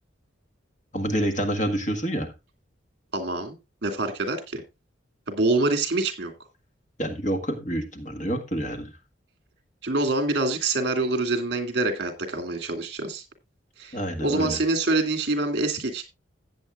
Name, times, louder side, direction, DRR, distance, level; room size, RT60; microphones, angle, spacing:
voice 1, 0.9-2.3 7.0-8.9 13.9-14.6, right 1 dB, 40° left, 5 dB, 1.6 m, -27 dB
voice 2, 3.1-3.6 3.8-4.6 5.3-6.3 9.8-13.2 13.8-16.0, right 2 dB, 55° right, 7 dB, 2.4 m, -25 dB
15.5 x 8.7 x 2.4 m, 0.24 s
head